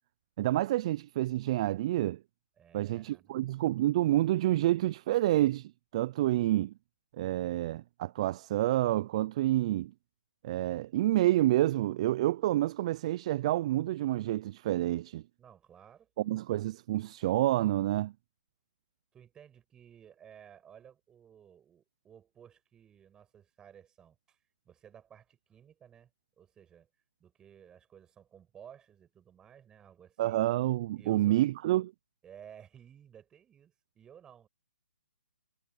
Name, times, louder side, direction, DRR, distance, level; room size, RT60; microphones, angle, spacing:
voice 1, 0.4-2.2 2.7-6.7 7.2-9.9 10.4-15.2 16.2-18.1 30.2-31.9, right 15 dB, 30° right, 0.3 m, -28 dB
voice 2, 2.6-3.3 15.4-16.3 19.1-24.4 24.6-26.1 26.4-26.9 27.2-30.4 30.9-31.4 32.2-34.5, right 9 dB, 10° right, 6.8 m, -55 dB
hypercardioid pair, 155°, 6 cm